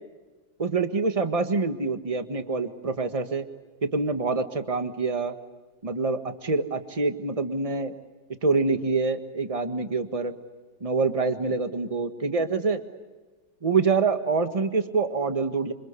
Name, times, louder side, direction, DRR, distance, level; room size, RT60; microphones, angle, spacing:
voice 1, 0.6-3.4 3.8-5.3 5.8-7.9 8.4-10.3 10.8-12.8 13.6-15.7, right 4 dB, 20° right, 8 dB, 1.5 m, -26 dB
27.0 x 26.5 x 8.3 m, 1.2 s
omnidirectional pair, 1.9 m